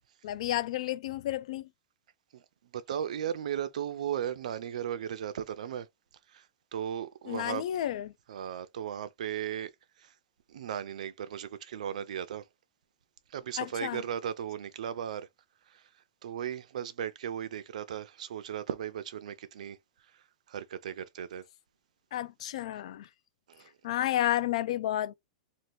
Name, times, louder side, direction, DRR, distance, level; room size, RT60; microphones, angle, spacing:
voice 1, 0.2-1.7 7.3-8.1 13.6-14.0 22.1-23.1 23.8-25.1, left 13 dB, 60° left, 0.3 m, -31 dB
voice 2, 2.3-5.9 6.3-6.5 6.7-7.6 8.3-9.7 10.0-10.1 10.5-12.4 13.3-15.3 15.7-15.9 16.2-19.8 20.1-21.4 23.5-23.7, right 9 dB, 80° right, 0.5 m, -36 dB
2.7 x 2.5 x 3.1 m
supercardioid pair, 165°, 4 cm